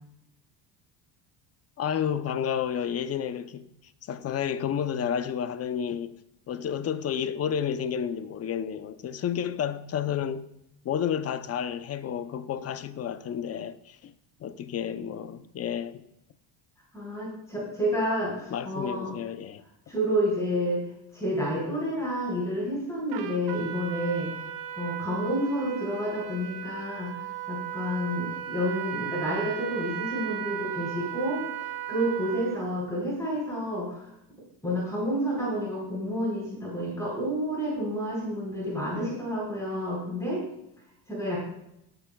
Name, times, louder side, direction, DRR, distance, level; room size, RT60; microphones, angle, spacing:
voice 1, 1.8-3.7 4.0-6.1 6.5-10.5 10.8-14.1 14.4-16.0 18.5-19.6, left 8 dB, 35° left, 0.6 m, -31 dB
voice 2, 16.9-19.1 19.9-20.9 21.1-24.3 24.8-31.4 31.9-34.0 34.6-40.4 41.1-41.4, equal, 5° left, 4.3 m, -29 dB
Trumpet, 23.1-32.7, right 11 dB, 60° right, 1.0 m, -36 dB
16.5 x 8.0 x 2.3 m
cardioid pair, 125°, 43 cm